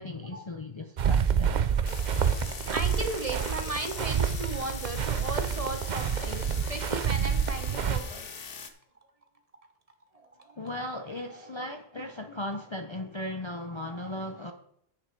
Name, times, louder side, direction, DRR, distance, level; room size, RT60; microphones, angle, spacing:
voice 1, 0.0-1.6 10.6-14.5, left 1 dB, 30° left, 0.7 m, -37 dB
sound 1, 1.0-8.0, right 7 dB, 50° right, 0.7 m, -28 dB
sound 2, 1.9-8.7, left 6 dB, 60° left, 1.1 m, -42 dB
voice 2, 2.3-8.3 10.1-10.6 11.3-11.5 13.9-14.1, right 2 dB, 35° right, 1.2 m, -37 dB
9.6 x 7.8 x 4.5 m
omnidirectional pair, 1.1 m